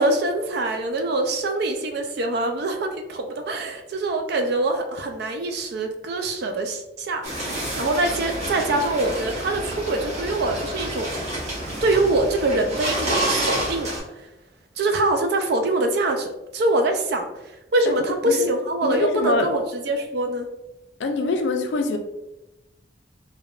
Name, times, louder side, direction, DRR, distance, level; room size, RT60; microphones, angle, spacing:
voice 1, 0.0-11.1 11.8-14.3 14.8-17.3 17.7-20.5, right 2 dB, 65° right, 5 dB, 0.4 m, -24 dB
sound 1, 7.2-14.0, right 1 dB, 40° right, 0.9 m, -28 dB
voice 2, 17.9-18.5 18.8-19.5 21.0-22.0, left 3 dB, 80° left, 5 dB, 0.4 m, -24 dB
3.3 x 2.2 x 2.3 m, 0.95 s
head